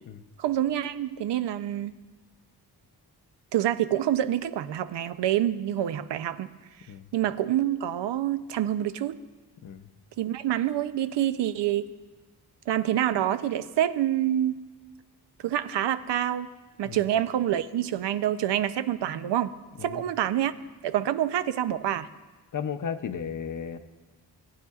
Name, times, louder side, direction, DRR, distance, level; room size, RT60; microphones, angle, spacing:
voice 1, 0.4-1.9 3.5-6.5 7.1-9.2 10.2-11.9 12.7-14.6 15.4-16.5 16.8-19.5 19.8-20.5 20.8-22.1, right 11 dB, 85° right, 13 dB, 0.5 m, -27 dB
voice 2, 22.5-23.8, left 7 dB, 50° left, 10 dB, 0.6 m, -34 dB
18.0 x 9.3 x 2.4 m, 1.3 s
wide cardioid pair, 130°, 41 cm